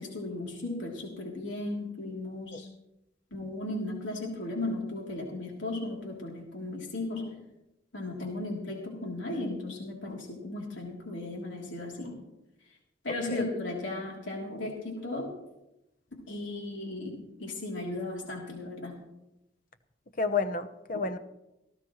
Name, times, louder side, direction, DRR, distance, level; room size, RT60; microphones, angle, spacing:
voice 1, 0.0-2.7 3.3-7.4 7.9-12.2 13.0-15.3 16.1-18.9, left 2 dB, 70° left, -2 dB, 3.3 m, -36 dB
voice 2, 20.2-21.2, left 4 dB, 45° left, 10 dB, 0.9 m, -30 dB
18.5 x 15.0 x 3.2 m, 0.89 s
head